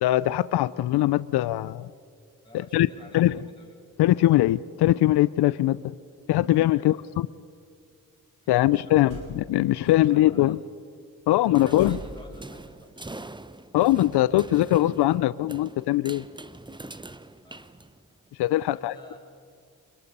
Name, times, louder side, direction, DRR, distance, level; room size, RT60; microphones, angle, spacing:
voice 1, 0.0-1.9 2.5-2.9 3.1-3.4 4.0-5.9 6.3-7.3 8.5-10.6 11.3-12.0 13.7-16.2 18.4-18.9, left 15 dB, 90° left, 17 dB, 0.5 m, -21 dB
voice 2, 2.4-3.7 6.7-7.0 8.4-9.3 9.8-10.6 11.3-12.9 17.4-17.8 18.7-19.2, left 1 dB, 10° left, -1 dB, 7.5 m, -51 dB
sound 1, 9.1-9.7 11.8-12.8, right 3 dB, 75° right, 5.4 m, -42 dB
sound 2, 11.5-18.3, right 2 dB, 10° right, 0.9 m, -43 dB
26.0 x 22.0 x 5.4 m, 2.3 s
cardioid pair, 60°, 38 cm